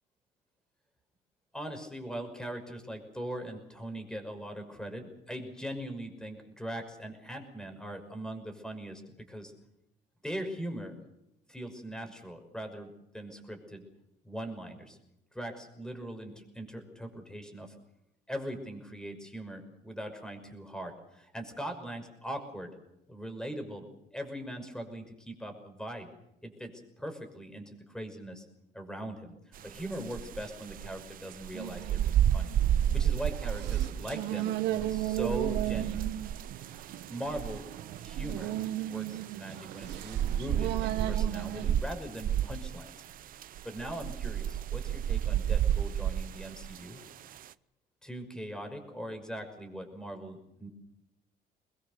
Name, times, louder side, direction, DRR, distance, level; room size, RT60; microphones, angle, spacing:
voice 1, 1.5-9.5 10.2-10.9 11.5-13.8 14.2-15.0 15.3-17.7 18.3-22.7 23.1-26.1 26.4-28.5 28.7-29.4 29.6-32.6 32.9-36.1 37.1-37.7 38.0-42.9 43.6-47.0 48.0-50.7, equal, 5° left, 5 dB, 5.8 m, -40 dB
sound 1, 29.6-47.5, right 10 dB, 55° right, 0.8 m, -31 dB
sound 2, 31.5-41.7, right 13 dB, 90° right, 1.5 m, -36 dB
23.0 x 21.0 x 6.8 m, 0.84 s
cardioid pair, 110°, 17 cm